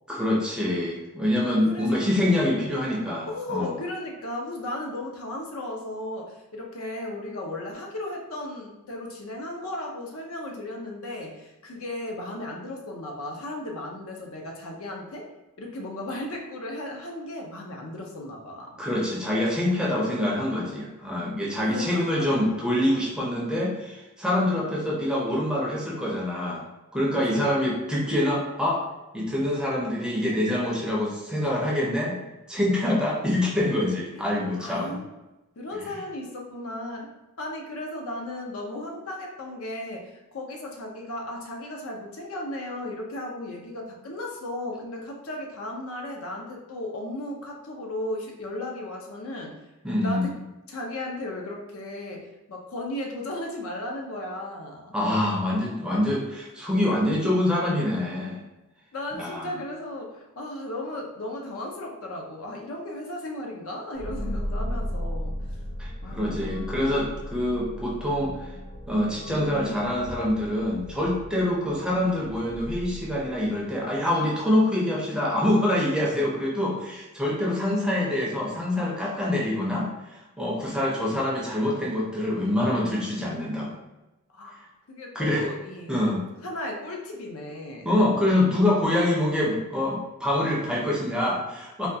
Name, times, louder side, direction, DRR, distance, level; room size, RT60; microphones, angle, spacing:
voice 1, 0.1-3.7 18.8-26.6 26.9-28.8 29.1-32.2 32.5-35.0 49.8-50.2 54.9-58.4 59.2-59.5 65.8-68.5 68.9-83.7 85.1-85.4 85.9-86.2 87.8-91.9, left 1 dB, 5° right, -4 dB, 0.5 m, -25 dB
voice 2, 1.6-2.2 3.3-15.3 15.6-18.8 21.7-22.6 27.3-27.6 34.1-35.1 35.6-37.1 37.4-49.6 50.0-50.3 50.7-54.9 58.9-65.3 66.0-66.6 84.3-86.2 86.4-87.9 88.2-88.3, left 1 dB, 65° left, 0 dB, 0.6 m, -35 dB
sound 1, 63.9-73.6, left 1 dB, 40° left, 0.8 m, -35 dB
3.4 x 2.3 x 2.7 m, 1.0 s
head